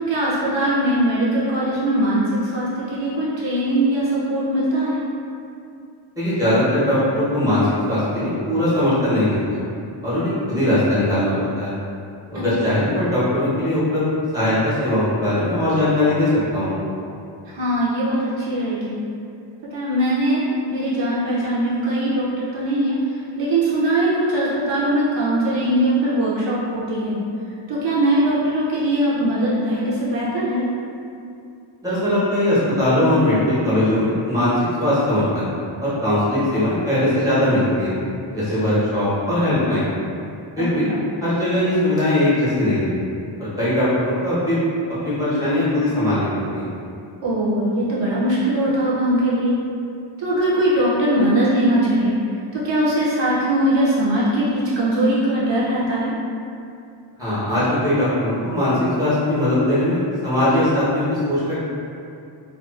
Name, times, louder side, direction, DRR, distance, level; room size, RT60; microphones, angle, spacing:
voice 1, 0.0-5.0 12.3-12.8 17.5-19.0 19.7-23.0 23.4-27.2 27.7-30.6 38.5-38.8 40.6-41.0 47.2-49.6 50.2-52.2 52.5-56.1, right 1 dB, 65° right, -8 dB, 0.6 m, -21 dB
voice 2, 6.2-9.6 10.0-11.7 12.3-14.0 14.3-16.8 31.8-34.5 34.8-35.4 35.8-37.9 38.3-39.9 40.6-40.9 41.2-42.9 43.4-44.6 45.0-46.7 57.2-61.6, left 1 dB, 5° right, -11 dB, 0.8 m, -20 dB
2.4 x 2.3 x 2.3 m, 2.5 s
wide cardioid pair, 150°, 48 cm